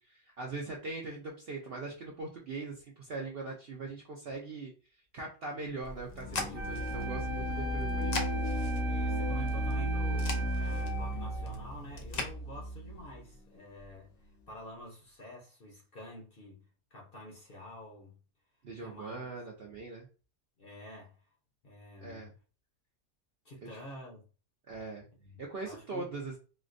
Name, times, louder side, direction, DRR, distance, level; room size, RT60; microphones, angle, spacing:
voice 1, 0.0-4.7 5.1-8.1 18.6-20.1 22.0-22.3 23.7-23.8 24.7-25.1 25.4-26.4, right 3 dB, 60° right, 0.6 m, -41 dB
sound 1, 5.8-12.3, left 2 dB, 90° left, 0.3 m, -42 dB
sound 2, 6.1-13.3, right 1 dB, 70° left, 1.0 m, -34 dB
Wind instrument woodwind instrument, 6.5-11.6, equal, 80° right, 1.1 m, -41 dB
voice 2, 8.9-16.7 16.9-18.2 18.8-19.3 20.6-21.3 21.6-22.3 23.4-24.3 25.2-26.1, left 1 dB, 50° left, 0.8 m, -48 dB
4.2 x 2.1 x 2.5 m
omnidirectional pair, 1.6 m